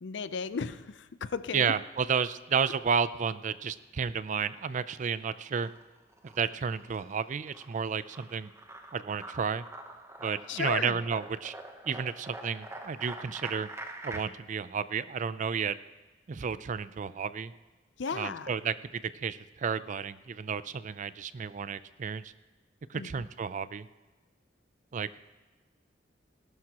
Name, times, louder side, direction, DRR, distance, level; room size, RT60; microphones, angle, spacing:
voice 1, 0.0-1.7 10.5-11.0 18.0-18.5 22.9-23.2, left 5 dB, 70° left, 14 dB, 0.5 m, -35 dB
voice 2, 1.5-5.7 6.4-8.5 8.9-9.6 10.2-11.5 11.9-13.7 14.0-15.7 16.3-17.5 18.1-22.3 22.9-23.9 24.9-25.2, right 6 dB, 40° right, 15 dB, 0.4 m, -32 dB
sound 1, 4.3-5.1 5.4-14.2, right 2 dB, 15° right, 0.9 m, -45 dB
18.0 x 12.0 x 2.9 m, 1.2 s
head